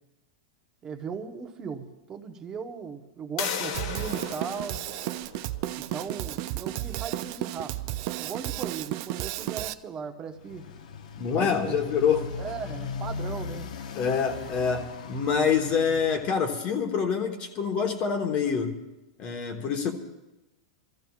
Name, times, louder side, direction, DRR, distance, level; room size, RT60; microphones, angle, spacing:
voice 1, 0.8-4.8 5.9-7.8 8.2-10.6 11.4-11.8 12.4-13.7, right 6 dB, 20° right, 5 dB, 1.0 m, -37 dB
sound 1, 3.4-9.0, left 7 dB, 60° left, 1.4 m, -38 dB
Drum kit, 3.7-9.7, right 15 dB, 40° right, 0.4 m, -33 dB
Motorcycle, 10.3-16.3, left 5 dB, 90° left, 1.0 m, -38 dB
voice 2, 11.2-12.3 13.9-18.8 19.2-19.9, left 6 dB, 30° left, 5 dB, 1.1 m, -26 dB
28.5 x 14.0 x 2.4 m, 0.99 s
supercardioid pair, 160°, 4 cm